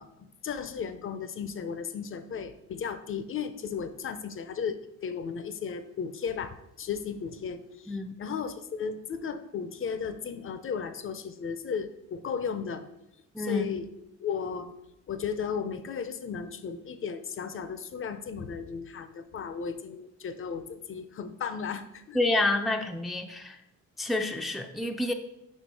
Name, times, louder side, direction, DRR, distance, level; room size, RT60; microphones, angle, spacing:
voice 1, 0.0-12.8 13.4-13.9 14.2-14.8 15.1-22.2, left 6 dB, 45° left, 10 dB, 0.6 m, -35 dB
voice 2, 13.3-13.7 22.1-23.6 24.0-25.1, left 2 dB, ahead, 4 dB, 0.5 m, -28 dB
4.8 x 4.4 x 4.7 m, 0.86 s
cardioid pair, 90°, 30 cm